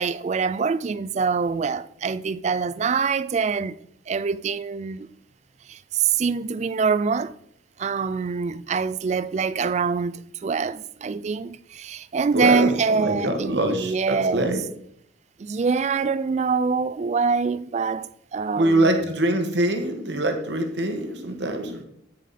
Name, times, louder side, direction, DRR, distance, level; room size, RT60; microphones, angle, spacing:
voice 1, 0.0-3.8 4.1-5.1 5.7-7.3 7.8-14.5 15.4-19.1, right 5 dB, 35° right, 0.3 m, -25 dB
voice 2, 12.3-14.6 18.6-21.8, right 1 dB, 60° right, 1.4 m, -24 dB
9.6 x 7.2 x 4.2 m
head